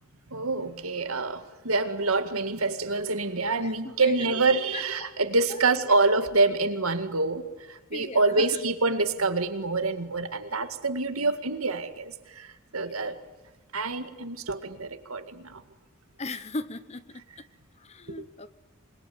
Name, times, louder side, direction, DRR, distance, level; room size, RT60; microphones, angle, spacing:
voice 1, 0.3-7.4 7.7-12.5 12.7-13.2 13.7-15.6 18.2-18.3, right 3 dB, 85° right, 9 dB, 2.1 m, -26 dB
voice 2, 3.6-4.3 4.7-5.1 5.5-5.9 7.9-8.7 12.8-13.1 16.2-17.4 17.8-18.5, left 3 dB, 30° left, 14 dB, 0.8 m, -39 dB
26.5 x 21.5 x 9.5 m, 1.2 s
head